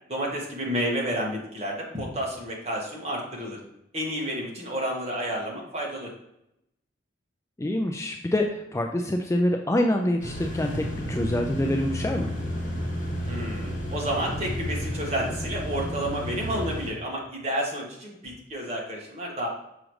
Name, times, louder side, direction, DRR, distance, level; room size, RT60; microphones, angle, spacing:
voice 1, 0.1-3.6 3.9-6.1 13.2-19.5, equal, 35° right, -3 dB, 1.5 m, -30 dB
voice 2, 7.6-12.3, left 1 dB, 15° left, 2 dB, 0.3 m, -26 dB
sound 1, 10.2-16.9, equal, 40° left, 2.0 m, -32 dB
6.2 x 4.9 x 3.1 m, 0.82 s
head